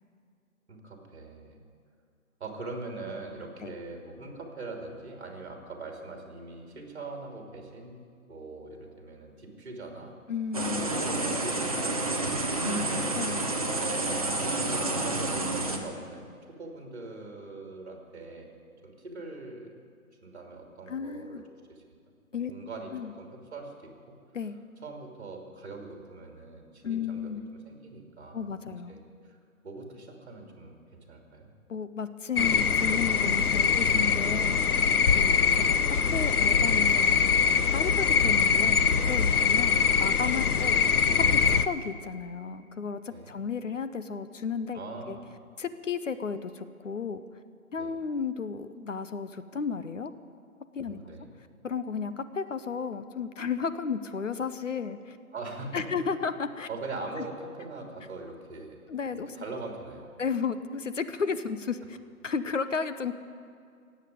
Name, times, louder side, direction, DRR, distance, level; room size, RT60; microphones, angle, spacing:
voice 1, 0.7-1.6 2.4-8.0 8.3-10.2 10.8-13.1 13.6-18.5 18.8-19.7 20.2-21.4 21.7-21.8 22.5-24.2 24.8-27.4 27.7-28.5 28.9-29.4 29.6-31.5 39.4-39.6 43.1-43.4 44.7-45.2 47.8-47.9 50.8-51.3 55.3-55.8 56.7-58.8 59.1-60.2, right 3 dB, 45° right, 2 dB, 2.8 m, -42 dB
voice 2, 10.3-11.0 13.1-13.4 20.9-21.4 22.3-22.5 22.9-23.1 24.3-24.6 26.8-27.4 28.3-29.0 31.7-34.8 35.1-37.4 37.7-38.8 39.1-40.8 41.2-44.8 45.1-45.2 45.6-47.2 47.7-50.1 50.7-51.0 51.6-55.2 55.7-56.7 57.2-57.3 58.9-59.4 60.2-62.0 62.2-63.1, left 5 dB, 60° left, 12 dB, 0.8 m, -33 dB
sound 1, 10.5-15.8, right 2 dB, 25° right, 0.8 m, -29 dB
sound 2, 32.4-41.7, left 6 dB, 85° left, 0.9 m, -23 dB
17.0 x 8.2 x 9.3 m, 2.3 s
hypercardioid pair, 175°, 44 cm